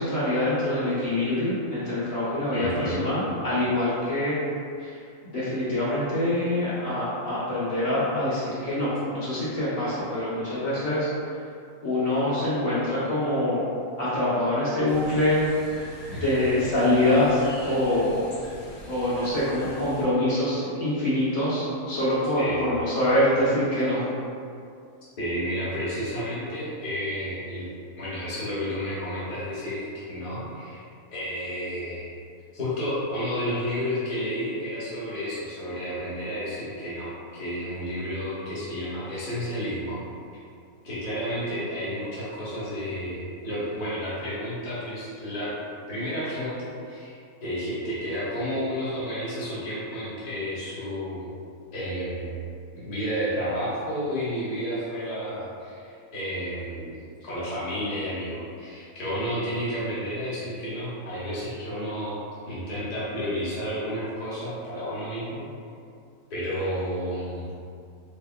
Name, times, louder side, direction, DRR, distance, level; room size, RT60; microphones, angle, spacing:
voice 1, 0.0-4.4 4.8-11.1 11.8-13.7 14.0-15.4 15.8-18.2 18.9-24.0, left 1 dB, 60° left, -12 dB, 1.7 m, -25 dB
voice 2, 2.5-3.1 16.1-16.3 22.4-22.8 25.2-27.7 28.0-30.8 31.1-32.1 32.5-40.0 40.8-45.5 45.9-51.3 51.7-52.5 52.7-62.2 62.5-65.4 66.3-67.4, equal, 30° left, -10 dB, 0.9 m, -31 dB
sound 1, 14.9-20.0, left 1 dB, 90° left, 1.3 m, -43 dB
3.5 x 3.4 x 2.3 m, 2.4 s
omnidirectional pair, 1.6 m